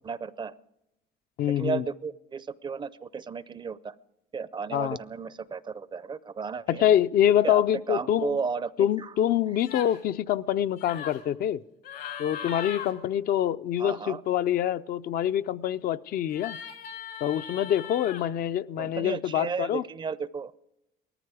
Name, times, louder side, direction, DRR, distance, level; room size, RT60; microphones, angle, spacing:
voice 1, 0.0-0.5 1.6-3.9 4.3-6.8 7.4-8.7 9.0-9.1 13.8-14.2 18.8-20.5, right 5 dB, 30° right, 0.4 m, -33 dB
voice 2, 1.4-1.8 4.7-5.0 6.7-8.4 8.8-11.6 12.2-16.6 17.2-19.8, left 11 dB, 60° left, 0.4 m, -25 dB
sound 1, 9.6-10.0 10.8-11.2 11.8-12.9 16.3-18.3, left 8 dB, 85° left, 2.8 m, -39 dB
18.5 x 14.0 x 4.9 m
cardioid pair, 110°, 17 cm